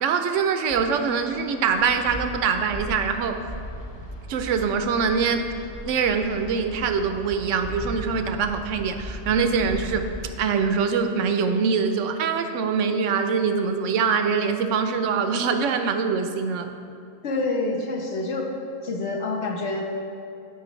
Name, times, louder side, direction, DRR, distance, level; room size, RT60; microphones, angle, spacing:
voice 1, 0.0-3.4 4.3-5.5 5.9-10.1 10.4-16.7, right 5 dB, 70° right, 7 dB, 0.9 m, -24 dB
Wind, 0.7-10.5, equal, 30° left, 0.5 m, -38 dB
voice 2, 17.2-18.5 18.8-20.0, left 2 dB, 60° left, 0 dB, 1.2 m, -27 dB
12.0 x 5.0 x 3.1 m, 2.6 s
omnidirectional pair, 1.4 m